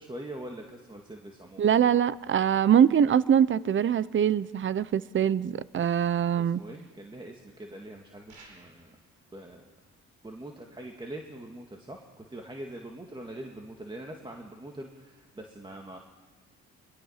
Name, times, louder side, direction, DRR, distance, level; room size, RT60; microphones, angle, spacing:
voice 1, 0.0-1.8 6.5-9.0 9.3-9.7 10.2-16.0, right 1 dB, 15° right, 2 dB, 2.0 m, -43 dB
voice 2, 1.6-6.6, right 8 dB, 40° right, 18 dB, 0.7 m, -23 dB
sound 1, 8.3-9.0, right 3 dB, 85° right, 5.0 m, -53 dB
22.5 x 22.0 x 5.8 m, 1.3 s
cardioid pair, 90°, 30 cm